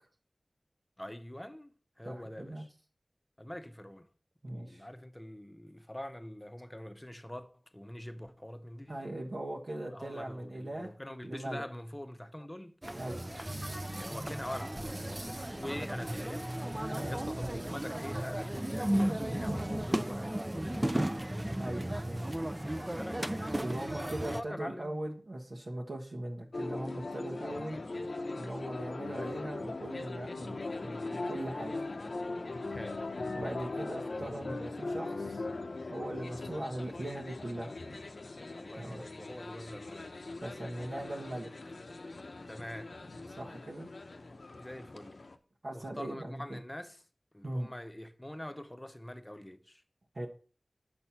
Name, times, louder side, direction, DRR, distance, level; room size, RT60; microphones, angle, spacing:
voice 1, 1.0-2.7 3.4-4.1 4.5-9.0 9.9-12.7 14.0-16.5 16.8-21.2 22.6-23.2 24.2-25.0 32.7-33.1 38.6-40.1 42.3-42.9 44.6-45.2 45.7-47.0 47.3-49.8, left 1 dB, 20° left, 0.7 m, -44 dB
voice 2, 2.0-2.6 4.4-4.9 8.9-10.9 11.2-11.6 13.0-13.3 16.9-17.7 19.3-19.8 21.6-22.2 23.6-27.8 28.4-31.7 33.3-35.4 35.9-37.7 38.7-39.0 40.4-41.7 43.3-43.9 45.6-46.6 47.4-47.7 50.1-50.3, right 1 dB, 70° right, 1.2 m, -40 dB
sound 1, 12.8-24.4, right 1 dB, 20° right, 0.5 m, -35 dB
sound 2, 26.5-45.4, left 3 dB, 85° left, 0.6 m, -40 dB
6.6 x 4.2 x 5.7 m
wide cardioid pair, 50°, 0 cm